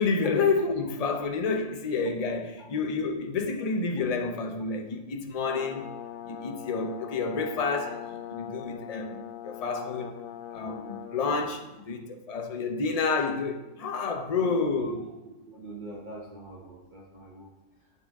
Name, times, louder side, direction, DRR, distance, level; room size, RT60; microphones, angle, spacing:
voice 1, 0.0-5.9 6.3-10.1 10.5-15.0, left 4 dB, 40° left, 0.5 m, -29 dB
Brass instrument, 5.4-11.2, left 11 dB, 75° left, 1.1 m, -41 dB
voice 2, 14.4-17.5, right 1 dB, 40° right, 0.9 m, -41 dB
8.7 x 6.9 x 3.6 m
omnidirectional pair, 1.5 m